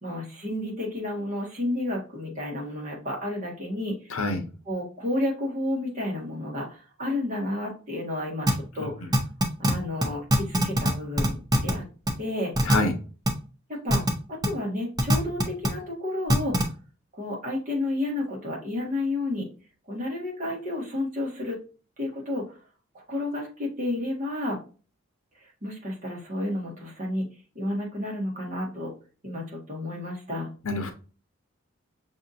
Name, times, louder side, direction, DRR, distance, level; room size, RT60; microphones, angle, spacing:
voice 1, 0.0-4.2 4.6-8.5 8.7-9.1 9.6-11.8 12.2-12.5 13.7-14.0 14.3-16.6 17.1-19.5 19.9-21.6 22.0-22.6 22.9-24.6 25.4-27.3 27.5-28.9 29.2-30.5, left 1 dB, 35° right, -2 dB, 1.5 m, -31 dB
voice 2, 4.1-4.4 8.8-9.1 12.6-12.9 30.6-30.9, left 2 dB, 80° left, 7 dB, 0.8 m, -27 dB
sound 1, 8.5-8.6 9.1-9.7 10.0-10.1 10.3-10.9 11.2-11.7 12.1-12.2 12.6-12.8 13.3-13.4 13.9-14.1 14.4-14.5 15.0-15.7 16.3-16.6, equal, 20° right, 0.6 m, -20 dB
5.8 x 2.8 x 2.5 m, 0.36 s
head